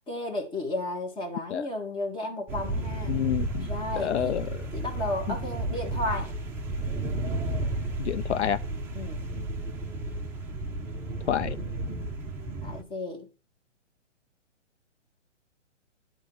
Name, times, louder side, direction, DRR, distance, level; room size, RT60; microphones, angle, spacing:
voice 1, 0.0-3.2 3.6-4.4 4.7-6.3 8.9-9.2 12.6-13.3, left 2 dB, 15° left, 1.6 m, -33 dB
sound 1, 2.5-12.8, right 2 dB, 5° right, 0.8 m, -33 dB
voice 2, 3.1-3.7 4.0-4.5 5.3-5.4 8.0-8.6 11.3-11.6, left 10 dB, 65° left, 0.5 m, -28 dB
10.5 x 3.8 x 5.4 m
figure-of-eight pair, 130°, 37 cm